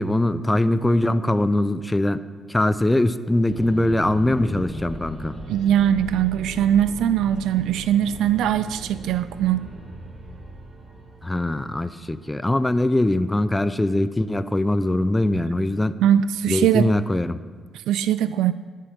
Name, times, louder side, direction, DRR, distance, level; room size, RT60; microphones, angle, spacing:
voice 1, 0.0-2.2 2.5-5.3 11.2-16.0 16.5-17.4, left 1 dB, 10° left, 13 dB, 0.6 m, -22 dB
sound 1, 3.5-13.0, right 1 dB, 40° right, 4.2 m, -38 dB
voice 2, 5.5-9.7 16.0-16.9 17.7-18.5, right 10 dB, 85° right, 14 dB, 0.3 m, -21 dB
13.0 x 9.9 x 5.2 m, 1.5 s
cardioid pair, 90°, 0 cm